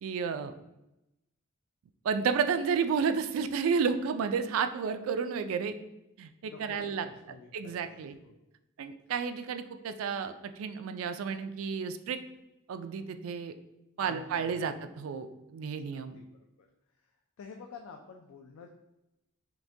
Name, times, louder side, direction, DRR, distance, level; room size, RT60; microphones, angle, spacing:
voice 1, 0.0-0.5 2.0-5.7 6.2-7.1 7.5-8.2 8.8-12.2 12.7-13.5 14.0-16.2, right 6 dB, 75° right, 9 dB, 0.3 m, -31 dB
voice 2, 6.4-8.4 14.0-14.7 15.9-16.2 16.6-16.7 17.0-17.1 17.4-18.7, left 5 dB, 80° left, 3 dB, 0.4 m, -49 dB
5.8 x 2.1 x 2.6 m, 0.92 s
head